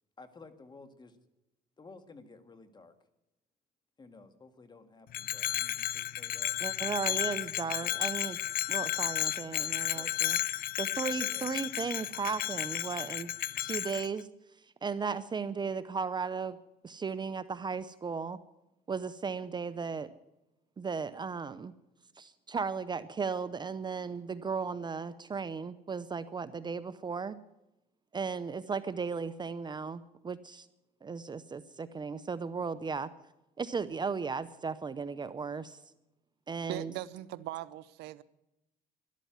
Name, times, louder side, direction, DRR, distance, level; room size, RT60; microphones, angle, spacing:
voice 1, 0.2-1.2 1.8-2.9 4.0-6.6 7.6-8.2 9.9-10.1 11.2-11.6, left 3 dB, 25° left, 1.8 m, -54 dB
Bell, 5.1-14.1, left 13 dB, 60° left, 0.6 m, -33 dB
voice 2, 6.6-8.4 8.7-10.4 10.8-14.3 14.8-16.6 16.8-18.4 18.9-20.1 20.8-21.7 22.2-27.4 28.1-30.7 31.0-33.1 33.6-35.8 36.5-36.9, right 5 dB, 25° right, 0.7 m, -36 dB
voice 3, 36.7-38.2, right 15 dB, 90° right, 0.7 m, -40 dB
12.5 x 12.0 x 9.4 m
cardioid pair, 110°, 17 cm